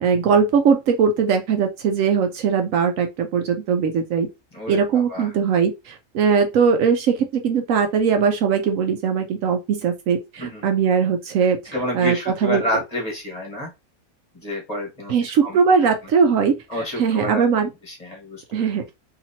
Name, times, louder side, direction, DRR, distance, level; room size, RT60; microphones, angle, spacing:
voice 1, 0.0-4.3 4.7-12.6 15.1-16.5 17.0-17.7 18.5-18.9, right 6 dB, 70° right, 0.9 m, -20 dB
voice 2, 4.5-5.3 10.4-10.6 11.7-13.7 14.4-15.9 16.7-18.8, left 1 dB, 30° left, 1.2 m, -29 dB
2.9 x 2.9 x 2.7 m
omnidirectional pair, 1.5 m